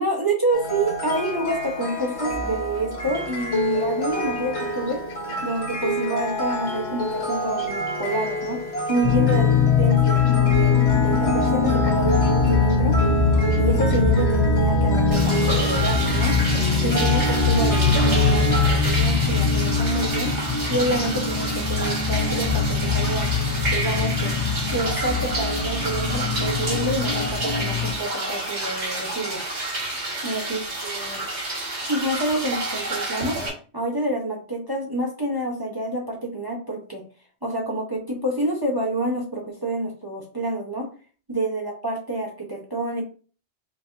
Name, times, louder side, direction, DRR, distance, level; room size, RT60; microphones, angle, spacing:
voice 1, 0.0-5.0 5.4-8.6 8.9-9.5 9.8-13.0 13.5-16.4 16.8-20.3 20.7-23.3 23.7-24.3 24.7-29.6 30.2-31.2 31.9-33.4 33.7-37.0 37.4-40.9 41.3-43.0, right 1 dB, 20° right, -1 dB, 0.7 m, -28 dB
sound 1, 0.5-18.8, equal, 65° left, 1.3 m, -29 dB
sound 2, 9.0-27.9, left 4 dB, 40° left, 0.4 m, -22 dB
sound 3, 15.1-33.5, right 2 dB, 65° right, 1.9 m, -29 dB
4.0 x 3.9 x 2.6 m, 0.39 s
omnidirectional pair, 1.2 m